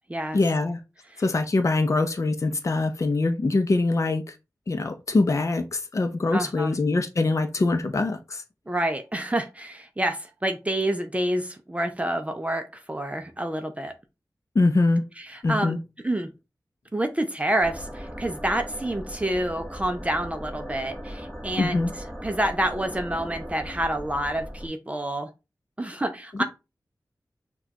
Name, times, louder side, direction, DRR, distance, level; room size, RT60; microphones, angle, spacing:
voice 1, 0.3-0.8 1.2-4.3 4.7-8.4 14.5-15.0 15.4-15.8 21.6-21.9, left 3 dB, 50° left, 0.5 m, -23 dB
voice 2, 6.3-6.7 8.7-13.9 15.2-15.7 16.0-16.3 16.9-21.9 22.2-25.3 25.8-26.4, right 1 dB, 20° right, 0.5 m, -28 dB
sound 1, 17.6-24.7, equal, ahead, 1.0 m, -38 dB
6.0 x 2.3 x 2.8 m
wide cardioid pair, 75°, 7 cm